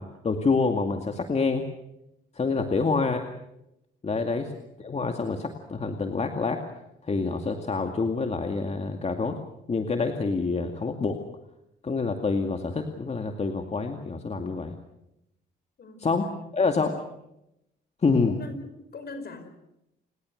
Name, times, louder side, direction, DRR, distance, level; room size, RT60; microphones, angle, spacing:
voice 1, 0.0-1.7 2.4-3.2 4.0-4.5 4.8-6.6 7.0-9.4 9.7-11.2 11.8-14.7 16.0-17.1 18.0-18.4, left 4 dB, 35° left, 5 dB, 2.3 m, -27 dB
voice 2, 2.5-2.9 15.8-16.5 18.3-19.5, left 3 dB, 50° left, 9 dB, 5.4 m, -43 dB
30.0 x 19.0 x 6.5 m, 0.86 s
cardioid pair, 90°, 20 cm